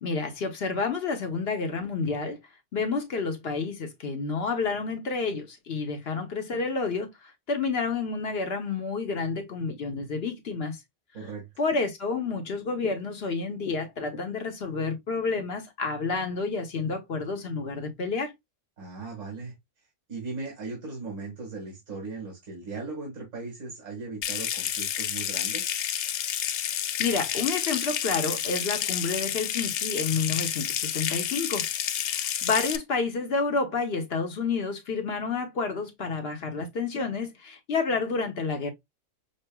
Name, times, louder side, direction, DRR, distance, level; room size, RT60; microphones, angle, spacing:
voice 1, 0.0-2.4 2.7-10.8 11.6-18.3 27.0-31.7 32.1-38.7, left 4 dB, 50° left, 1.1 m, -29 dB
voice 2, 11.1-11.5 18.8-19.6 20.1-25.7, right 3 dB, 75° right, 2.2 m, -38 dB
Water tap faucet / Sink (filling or washing) / Trickle dribble, 24.2-32.8, left 10 dB, 65° left, 0.8 m, -30 dB
6.5 x 2.4 x 2.2 m
omnidirectional pair, 1.4 m